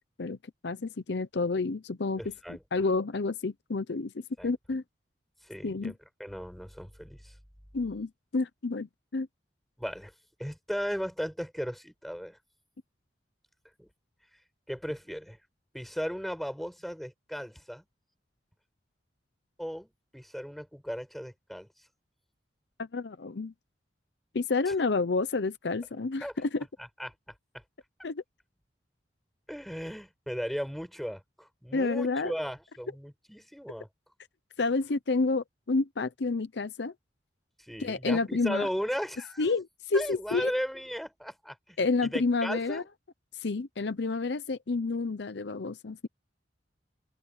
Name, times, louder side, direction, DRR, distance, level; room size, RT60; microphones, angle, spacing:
voice 1, 0.6-2.2 2.7-4.1 4.4-4.8 5.6-5.9 7.7-8.9 9.1-9.3 22.8-23.5 24.3-26.6 28.0-28.2 31.7-32.3 34.6-36.9 37.8-38.7 39.4-40.5 41.8-42.8 43.4-46.1, left 3 dB, 65° left, 0.7 m, -29 dB
voice 2, 2.2-2.6 4.4-4.5 5.4-7.4 9.8-10.1 10.4-12.4 13.8-13.9 14.7-15.4 15.7-17.8 19.6-21.9 24.7-24.8 26.2-26.3 27.0-27.6 28.0-28.1 29.5-33.9 37.6-39.5 39.9-41.8 42.0-42.9, equal, ahead, 7.4 m, -36 dB
open air
head